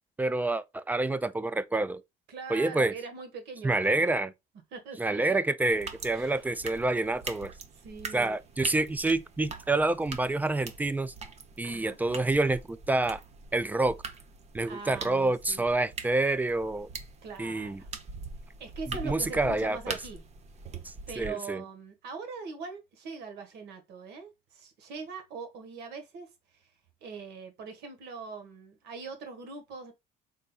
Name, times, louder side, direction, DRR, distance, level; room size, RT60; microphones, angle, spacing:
voice 1, 0.2-2.0 2.5-2.9 3.6-4.3 5.0-7.5 8.1-11.1 11.6-13.2 13.5-14.0 14.5-16.9 17.4-17.8 18.9-20.0 20.8-21.6, right 2 dB, 10° right, 0.4 m, -28 dB
voice 2, 2.3-4.1 4.7-5.4 6.1-6.4 7.7-8.3 11.6-12.0 14.7-15.7 17.2-17.9 18.6-20.2 21.1-26.7 27.0-29.9, right 4 dB, 75° right, 1.4 m, -42 dB
sound 1, 5.7-21.3, right 4 dB, 40° right, 0.8 m, -43 dB
4.0 x 3.8 x 2.3 m
cardioid pair, 110°, 17 cm